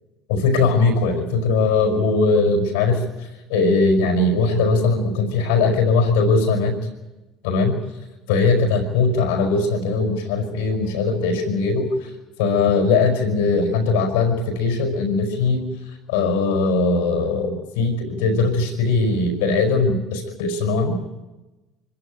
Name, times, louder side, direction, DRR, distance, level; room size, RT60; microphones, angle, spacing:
voice 1, 0.3-6.7 7.4-7.8 8.3-12.1 12.4-15.7 16.1-21.0, left 3 dB, 85° left, 6 dB, 5.1 m, -20 dB
25.5 x 15.5 x 9.0 m, 1.1 s
hypercardioid pair, 75°, 0 cm